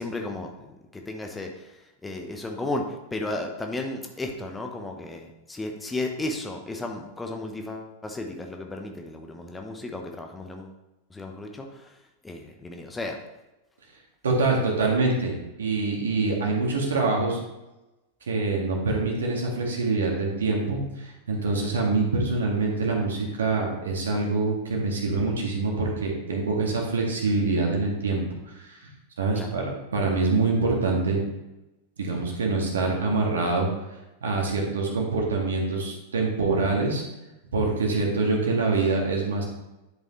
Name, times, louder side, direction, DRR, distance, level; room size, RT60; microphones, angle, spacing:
voice 1, 0.0-1.7 2.0-10.7 11.1-11.9 12.2-13.2 29.3-29.5, left 2 dB, 10° left, 3 dB, 0.9 m, -34 dB
voice 2, 14.2-17.4 18.3-28.2 28.5-28.9 29.2-31.2 32.0-33.7 34.2-37.0 37.5-39.4, right 3 dB, 65° right, 0 dB, 1.9 m, -25 dB
10.5 x 5.4 x 3.2 m, 0.99 s
figure-of-eight pair, 90°, 0 cm